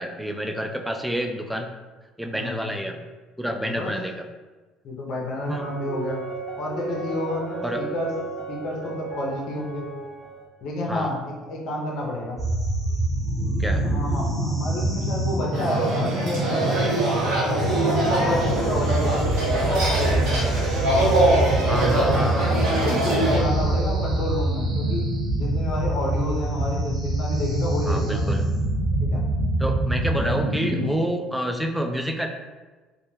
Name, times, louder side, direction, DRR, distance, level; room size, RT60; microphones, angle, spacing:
voice 1, 0.0-1.7 2.2-3.0 3.4-4.3 5.5-5.7 7.6-7.8 10.9-11.1 13.6-13.8 21.7-22.7 27.9-28.4 29.6-32.3, equal, 5° right, 4 dB, 0.3 m, -28 dB
voice 2, 2.2-2.7 3.6-3.9 4.8-6.2 6.6-8.1 8.5-9.9 10.6-12.4 13.8-16.8 17.4-20.5 21.4-25.1 25.3-28.3 29.0-29.3, left 1 dB, 60° left, -1 dB, 0.5 m, -30 dB
sound 1, 5.4-10.5, right 4 dB, 35° left, 0.9 m, -35 dB
sound 2, 12.4-30.9, right 1 dB, 40° right, 0.9 m, -25 dB
sound 3, 15.5-23.4, right 1 dB, 70° right, 0.8 m, -23 dB
2.2 x 2.1 x 3.0 m, 1.3 s
hypercardioid pair, 70°, 0 cm